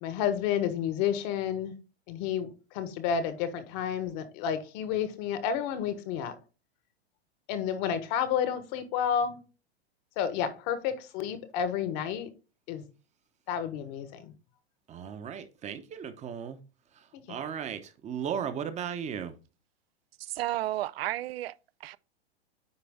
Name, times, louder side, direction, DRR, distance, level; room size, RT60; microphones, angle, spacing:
voice 1, 0.0-1.7 2.1-6.3 7.5-9.4 10.2-12.3 12.7-12.8 13.5-14.3 17.3-17.4, left 8 dB, 45° left, 1.1 m, -30 dB
voice 2, 14.9-16.6 17.3-19.3, right 8 dB, 20° right, 0.9 m, -36 dB
voice 3, 20.2-22.0, right 15 dB, 65° right, 0.5 m, -33 dB
9.6 x 3.3 x 3.5 m
hypercardioid pair, 125°, 32 cm